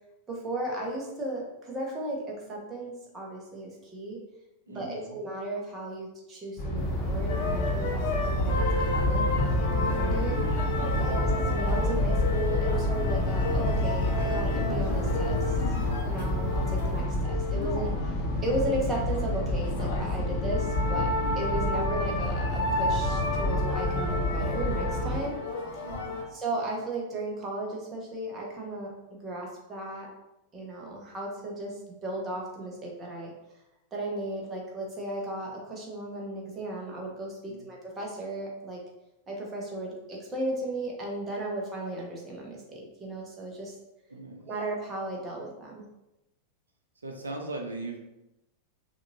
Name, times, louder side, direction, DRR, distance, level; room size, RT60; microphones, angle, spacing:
voice 1, 0.3-4.2 4.7-10.4 11.0-15.6 16.1-17.9 18.4-25.4 25.7-25.8 26.3-28.9 29.2-30.1 30.5-33.3 33.9-38.8 39.3-43.7 44.5-45.8, right 1 dB, 20° right, -2 dB, 1.3 m, -35 dB
voice 2, 4.7-5.2 10.9-11.2 25.8-26.3 37.5-37.7 44.1-44.5 47.0-48.0, right 2 dB, 75° right, 2 dB, 0.7 m, -39 dB
sound 1, 6.6-25.2, left 1 dB, 35° left, 1.4 m, -29 dB
sound 2, 6.7-17.0, right 1 dB, 15° left, 1.1 m, -34 dB
sound 3, 7.3-26.2, left 2 dB, 55° left, 0.9 m, -33 dB
6.0 x 2.7 x 2.7 m, 0.92 s
figure-of-eight pair, 90°, 0 cm